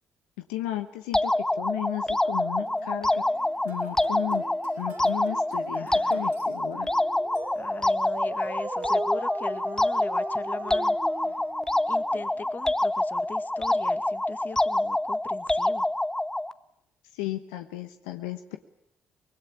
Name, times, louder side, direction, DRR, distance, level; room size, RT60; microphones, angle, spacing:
voice 1, 0.5-3.2 3.6-4.4 4.8-6.9 17.1-18.6, left 15 dB, 90° left, 7 dB, 1.1 m, -34 dB
sound 1, 1.1-16.5, left 1 dB, 10° left, 0.9 m, -26 dB
sound 2, 2.7-8.0, right 8 dB, 85° right, 5.7 m, -48 dB
voice 2, 5.7-6.3 7.6-11.0 11.9-15.9, left 5 dB, 40° left, 10 dB, 1.9 m, -41 dB
Dog, 7.0-12.7, right 5 dB, 40° right, 1.1 m, -39 dB
24.5 x 20.0 x 8.7 m, 0.79 s
supercardioid pair, 60°, 5 cm